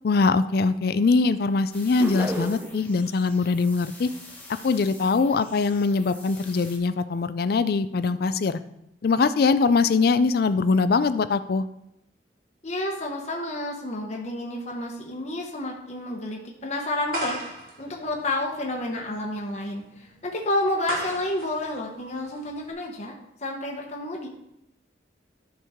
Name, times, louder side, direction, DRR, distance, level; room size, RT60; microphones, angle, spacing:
voice 1, 0.0-4.1 4.6-8.6 9.0-11.7, left 4 dB, 55° left, 13 dB, 0.4 m, -22 dB
sound 1, 1.7-6.8, left 2 dB, 10° left, 1.6 m, -47 dB
sound 2, 2.0-2.9, right 1 dB, 10° right, 0.6 m, -32 dB
voice 2, 12.6-17.4 17.8-24.3, left 1 dB, 40° left, 0 dB, 1.0 m, -30 dB
sound 3, 17.1-22.7, right 1 dB, 55° right, 2.0 m, -36 dB
12.0 x 4.7 x 3.6 m, 0.82 s
head